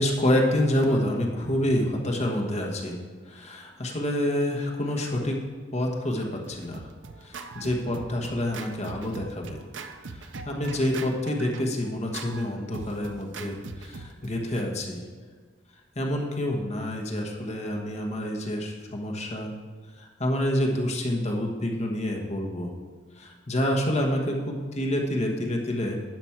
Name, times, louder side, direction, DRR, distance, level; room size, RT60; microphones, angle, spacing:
voice 1, 0.0-3.0 3.3-5.4 5.7-6.9 7.2-9.6 10.2-15.0 16.0-19.5 20.0-22.7 23.2-26.0, left 1 dB, 35° left, 0 dB, 1.3 m, -27 dB
Scratching (performance technique), 6.2-14.6, right 4 dB, 75° right, 0.6 m, -42 dB
11.0 x 6.1 x 4.5 m, 1.5 s
head